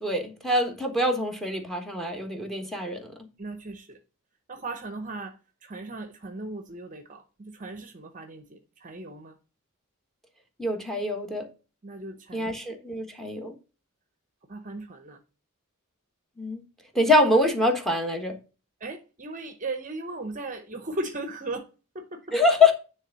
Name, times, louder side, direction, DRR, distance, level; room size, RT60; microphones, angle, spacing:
voice 1, 0.0-3.1 10.6-11.5 12.3-13.5 16.4-16.6 16.9-18.4 22.3-22.7, left 2 dB, ahead, 1.4 m, -24 dB
voice 2, 3.4-4.0 4.5-9.3 11.8-12.5 14.5-15.2 18.8-21.7 21.9-22.2, right 2 dB, 35° right, 0.8 m, -37 dB
9.8 x 3.5 x 6.8 m
head